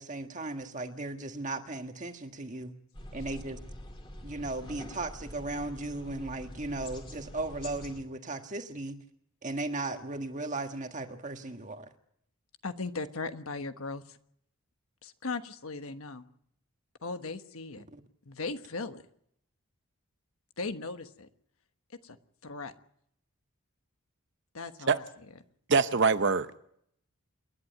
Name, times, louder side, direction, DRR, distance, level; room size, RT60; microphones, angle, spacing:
voice 1, 0.0-2.7 3.1-3.6 4.2-9.0 9.4-11.9 17.9-18.0, right 2 dB, 35° right, 1.6 m, -36 dB
sound 1, 2.9-8.0, left 1 dB, 20° left, 2.4 m, -45 dB
voice 2, 12.6-14.2 15.0-16.2 17.0-17.8 18.3-19.0 20.6-21.3 22.0-22.2 22.4-22.7 24.5-25.0, left 3 dB, 70° left, 1.3 m, -37 dB
voice 3, 25.7-26.6, right 4 dB, 50° right, 0.7 m, -24 dB
28.0 x 11.0 x 9.2 m
head